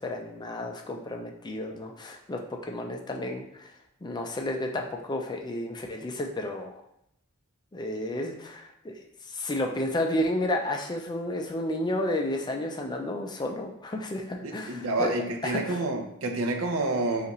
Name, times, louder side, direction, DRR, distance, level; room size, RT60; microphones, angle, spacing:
voice 1, 0.0-3.7 4.0-6.8 7.7-9.0 9.3-15.8, left 1 dB, 20° left, 2 dB, 0.4 m, -32 dB
voice 2, 14.4-17.3, right 2 dB, 70° right, 4 dB, 0.6 m, -29 dB
5.3 x 2.5 x 3.0 m, 0.78 s
head